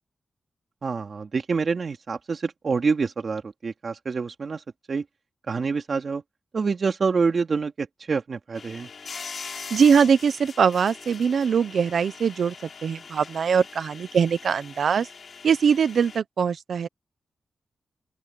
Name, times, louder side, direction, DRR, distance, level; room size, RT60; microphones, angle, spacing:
voice 1, 0.8-5.0 5.5-6.2 6.5-8.9, right 5 dB, 50° right, 3.0 m, -27 dB
sound 1, 8.5-16.2, left 5 dB, 60° left, 4.9 m, -41 dB
voice 2, 9.7-12.5 12.8-15.1 15.4-16.9, right 6 dB, 75° right, 0.8 m, -22 dB
open air
wide cardioid pair, 95°, 0 cm